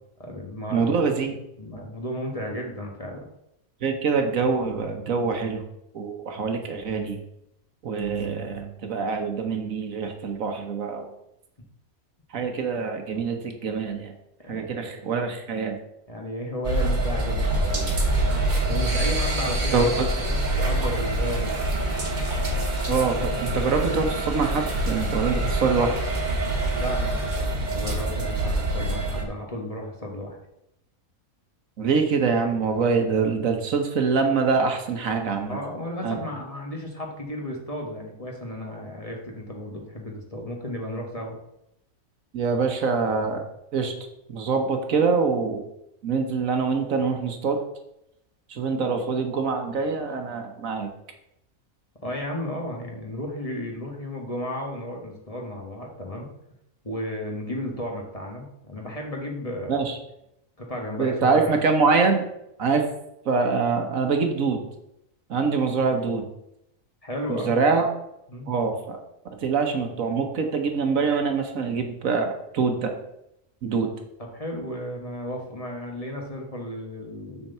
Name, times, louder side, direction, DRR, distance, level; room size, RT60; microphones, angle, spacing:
voice 1, 0.2-1.0 1.6-3.2 14.4-15.0 16.1-18.3 18.7-19.9 20.5-21.5 26.7-30.4 35.5-41.4 52.0-56.3 56.8-59.9 60.6-61.5 67.0-67.6 68.3-68.5 74.2-77.5, left 1 dB, 25° left, -1 dB, 1.4 m, -33 dB
voice 2, 0.7-1.4 3.8-5.6 5.9-7.2 7.8-11.1 12.3-14.1 14.5-15.8 19.7-20.1 22.9-25.9 31.8-35.6 36.0-36.2 42.3-43.4 43.7-43.9 44.3-45.6 46.0-47.6 48.5-50.9 59.7-60.0 61.0-62.2 62.6-62.8 63.2-64.6 65.3-66.3 67.3-67.9 68.5-69.0 69.4-72.3 72.5-72.9 73.6-73.9, right 5 dB, 70° right, 5 dB, 1.5 m, -24 dB
sound 1, 16.6-29.2, right 1 dB, 35° right, 1.4 m, -25 dB
7.3 x 4.5 x 6.6 m, 0.82 s
omnidirectional pair, 1.5 m